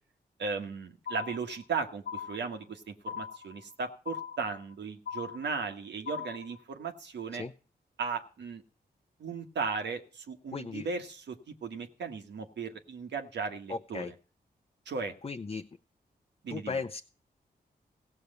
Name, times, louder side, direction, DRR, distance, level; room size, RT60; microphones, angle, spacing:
voice 1, 0.4-7.4 8.0-8.6 9.2-14.0 14.8-15.1 16.4-16.8, right 5 dB, 85° right, 4 dB, 1.5 m, -36 dB
sound 1, 1.1-1.7 2.1-2.7 3.1-3.7 4.1-4.7 5.1-5.7 6.1-6.6, left 8 dB, 75° left, 0.7 m, -39 dB
voice 2, 10.5-10.9 13.7-14.1 15.2-15.7 16.5-17.0, left 4 dB, 35° left, 5 dB, 0.6 m, -36 dB
16.0 x 6.8 x 6.7 m, 0.38 s
cardioid pair, 60°, 18 cm